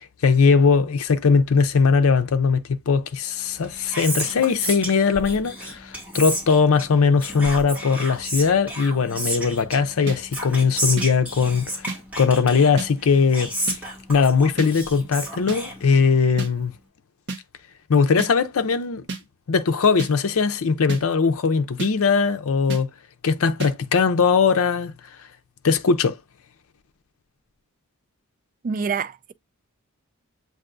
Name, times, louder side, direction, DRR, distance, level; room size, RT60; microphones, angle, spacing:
voice 1, 0.2-11.9 12.2-13.5 14.1-16.7 17.9-19.0 19.5-22.9 23.2-24.9 25.6-26.2, left 5 dB, 65° left, 0.5 m, -20 dB
Whispering, 3.5-16.3, right 1 dB, 10° right, 2.1 m, -32 dB
sound 1, 10.1-10.2 11.0-11.1 11.9-12.0 12.8-12.9 13.7-13.8 14.6-14.7 15.5-15.6 16.4-16.5 17.3-17.4 18.2-18.3 19.1-19.2 20.0-20.1 20.9-21.0 21.8-21.9 22.7-22.8 23.6-23.7, right 3 dB, 55° right, 0.9 m, -30 dB
voice 2, 28.6-29.3, right 5 dB, 40° right, 0.3 m, -26 dB
7.7 x 2.6 x 2.5 m
head